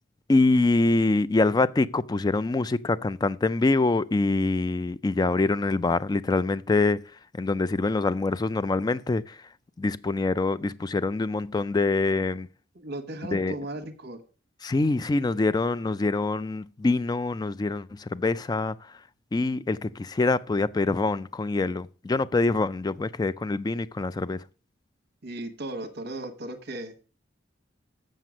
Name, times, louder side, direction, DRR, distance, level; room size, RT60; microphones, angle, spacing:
voice 1, 0.3-7.0 7.3-9.4 9.8-12.5 13.3-13.6 14.6-18.9 19.3-24.4, left 3 dB, 20° left, 0.3 m, -25 dB
voice 2, 12.7-14.2 25.2-27.0, right 1 dB, 55° right, 1.1 m, -36 dB
7.6 x 6.4 x 6.1 m
head